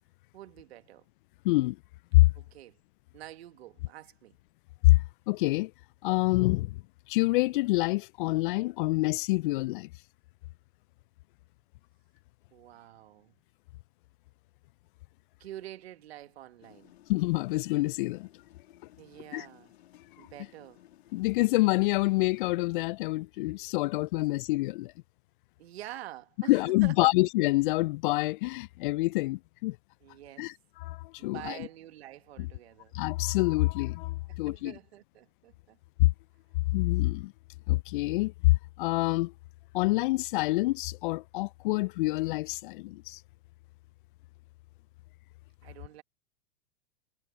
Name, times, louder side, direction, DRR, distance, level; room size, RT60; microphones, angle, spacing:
voice 1, 0.3-1.1 2.3-2.8 3.1-4.4 12.5-13.4 15.4-16.9 19.0-19.7 20.2-20.8 25.6-26.9 30.0-30.5 31.2-32.9 34.3-35.8 45.6-46.0, right 13 dB, 65° right, 1.9 m, -47 dB
voice 2, 1.4-1.8 2.1-2.3 4.8-5.7 6.0-6.8 7.1-9.9 17.1-18.3 19.3-19.5 21.1-24.9 26.5-29.8 30.4-30.5 30.8-31.6 32.9-34.7 36.0-36.1 36.7-37.3 37.7-39.3 39.7-43.2, left 21 dB, 50° left, 0.5 m, -26 dB
sound 1, 16.6-22.5, left 13 dB, 70° left, 3.2 m, -58 dB
hypercardioid pair, 105°, 34 cm